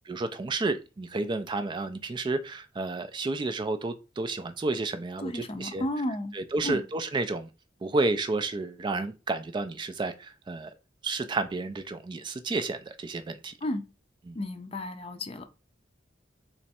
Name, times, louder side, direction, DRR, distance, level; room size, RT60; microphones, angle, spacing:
voice 1, 0.1-5.8 6.3-7.5 7.8-10.7 11.0-13.5 14.3-14.4, right 3 dB, 25° right, 0.3 m, -31 dB
voice 2, 5.2-6.4 6.6-6.8 13.6-13.8 14.3-15.5, left 1 dB, 30° left, 0.5 m, -33 dB
3.3 x 3.0 x 4.2 m
head